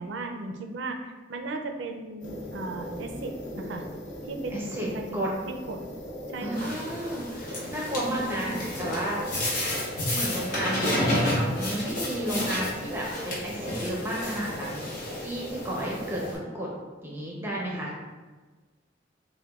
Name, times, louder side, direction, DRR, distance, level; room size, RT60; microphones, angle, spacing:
voice 1, 0.0-3.9 4.2-4.7 4.9-5.2 5.7-5.8 6.3-6.7, right 3 dB, 75° right, 5 dB, 0.4 m, -36 dB
sound 1, 2.2-16.3, equal, 80° left, 0.8 m, -38 dB
voice 2, 4.5-4.9 5.1-5.3 6.4-9.5 10.1-14.9 15.2-16.7 17.0-17.9, right 1 dB, 10° right, -4 dB, 0.6 m, -32 dB
sound 2, 6.5-16.4, left 1 dB, 50° left, 1.0 m, -32 dB
6.0 x 2.2 x 2.3 m, 1.3 s
head